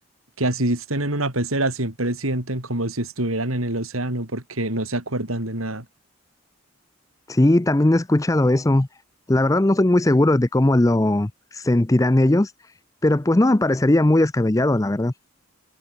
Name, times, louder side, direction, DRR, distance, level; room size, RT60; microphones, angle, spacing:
voice 1, 0.4-5.8, right 1 dB, 90° right, 5.0 m, -25 dB
voice 2, 7.3-8.9 9.3-12.5 13.0-15.1, left 1 dB, 15° left, 0.5 m, -18 dB
head